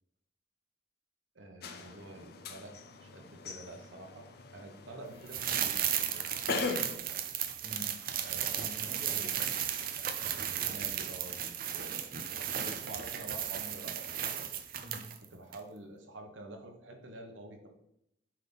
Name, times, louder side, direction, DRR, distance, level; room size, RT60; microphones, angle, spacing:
voice 1, 1.3-4.3 4.5-7.2 8.2-8.5 8.9-9.5 10.4-14.3 15.3-17.7, right 2 dB, 90° right, 3 dB, 1.3 m, -49 dB
sound 1, 1.6-7.0, left 4 dB, 55° left, 0.6 m, -40 dB
sound 2, 5.3-15.2 15.5-15.6, right 9 dB, 50° right, 0.6 m, -35 dB
voice 2, 7.6-8.0 8.3-9.5 14.8-15.1, equal, 30° left, -1 dB, 1.6 m, -47 dB
9.0 x 3.7 x 4.0 m, 0.80 s
head